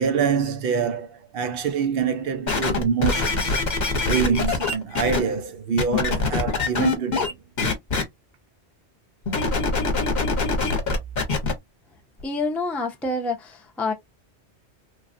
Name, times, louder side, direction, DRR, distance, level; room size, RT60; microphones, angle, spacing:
voice 1, 0.0-3.6 4.0-7.4, right 6 dB, 60° right, 0.7 m, -25 dB
sound 1, 2.5-5.2 5.8-7.3 7.6-8.0 9.3-11.5 12.2-12.3, left 4 dB, 45° left, 0.9 m, -23 dB
voice 2, 12.2-13.9, left 2 dB, ahead, 0.4 m, -27 dB
3.1 x 2.3 x 2.5 m
omnidirectional pair, 1.2 m